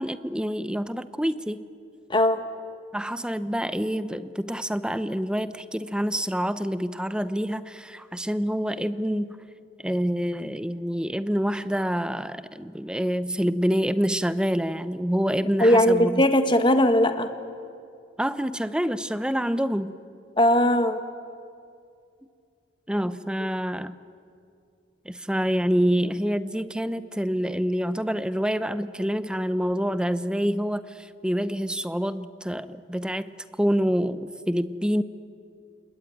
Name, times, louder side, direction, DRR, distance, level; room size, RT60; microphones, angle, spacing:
voice 1, 0.0-1.6 2.9-9.4 9.8-16.2 18.2-19.9 22.9-23.9 25.0-33.3 33.6-35.0, equal, 5° right, 13 dB, 0.7 m, -27 dB
voice 2, 2.1-2.4 15.6-17.3 20.4-21.0, left 1 dB, 25° left, 8 dB, 1.6 m, -19 dB
28.5 x 21.5 x 9.3 m, 2.4 s
head